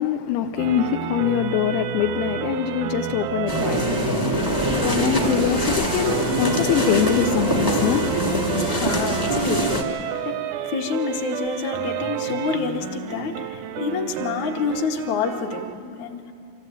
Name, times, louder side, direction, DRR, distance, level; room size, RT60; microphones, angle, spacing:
voice 1, 0.0-3.8 4.8-8.1, left 10 dB, 85° left, 2.5 m, -23 dB
sound 1, 0.6-15.7, right 10 dB, 80° right, 1.8 m, -30 dB
sound 2, 3.5-9.8, equal, 15° left, 0.7 m, -23 dB
voice 2, 8.5-16.2, left 5 dB, 60° left, 2.4 m, -28 dB
25.5 x 15.0 x 8.9 m
omnidirectional pair, 4.2 m